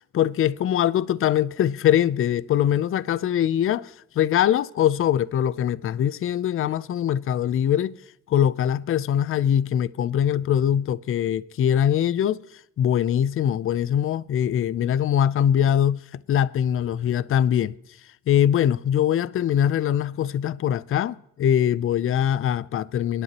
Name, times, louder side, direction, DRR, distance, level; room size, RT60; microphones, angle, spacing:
voice 1, 0.1-8.0 8.3-12.4 12.8-16.0 16.3-17.7 18.3-23.2, left 10 dB, 45° left, 0.4 m, -22 dB
23.0 x 11.0 x 2.9 m
cardioid pair, 90°, 30 cm